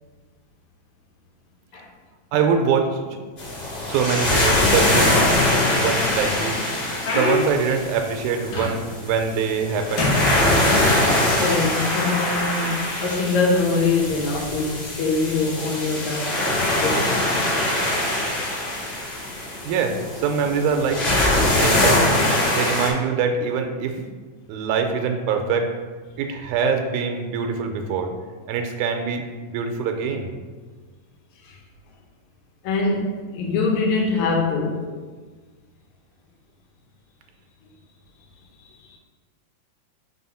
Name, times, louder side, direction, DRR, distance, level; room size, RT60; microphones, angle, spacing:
voice 1, 2.3-3.2 3.8-5.1 5.8-6.6 7.1-10.1 19.7-21.1 21.6-22.0 22.5-24.1 24.5-25.7 26.2-28.1 28.5-29.2 29.5-30.3, right 6 dB, 85° right, 4 dB, 2.0 m, -24 dB
sound 1, 3.4-22.9, left 1 dB, 25° left, 1.6 m, -22 dB
sound 2, 6.6-9.1 9.4-9.7 10.0-11.2 12.0-12.1 12.8-13.0 14.2-14.4, left 2 dB, 60° left, 1.4 m, -27 dB
voice 2, 11.3-16.6 16.8-17.1 31.4-31.6 32.6-34.9 38.8-39.0, left 3 dB, 80° left, 0 dB, 2.2 m, -23 dB
4.7 x 4.0 x 5.5 m, 1.4 s
omnidirectional pair, 3.4 m